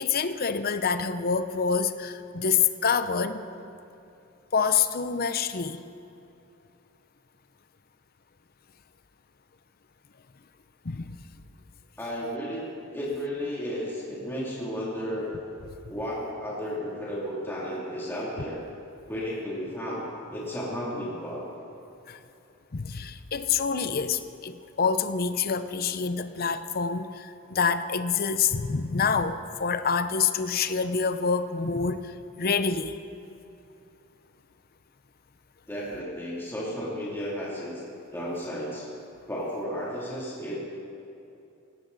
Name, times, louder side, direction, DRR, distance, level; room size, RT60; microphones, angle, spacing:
voice 1, 0.0-3.4 4.5-5.8 10.8-11.2 22.1-22.2 22.7-32.1 32.4-33.0, left 6 dB, 40° left, 11 dB, 0.6 m, -27 dB
voice 2, 12.0-15.3 15.9-18.6 19.1-21.4 35.7-37.7 38.1-38.9 39.3-40.5, equal, 10° left, -7 dB, 2.8 m, -33 dB
18.0 x 17.5 x 4.0 m, 2.7 s
head